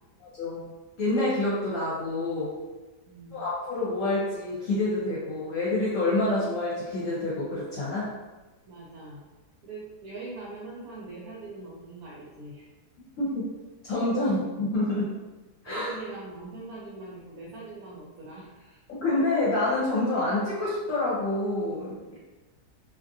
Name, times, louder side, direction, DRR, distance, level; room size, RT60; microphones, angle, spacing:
voice 1, 0.2-0.7 1.0-2.6 3.3-8.1 13.2-13.4 13.9-15.1 15.6-15.9 18.9-22.2, left 2 dB, 60° left, -8 dB, 1.0 m, -27 dB
voice 2, 3.1-3.4 8.7-9.2 9.6-12.7 15.7-18.8 21.9-22.2, right 3 dB, 70° right, -6 dB, 1.0 m, -42 dB
2.7 x 2.4 x 2.6 m, 1.2 s
omnidirectional pair, 1.7 m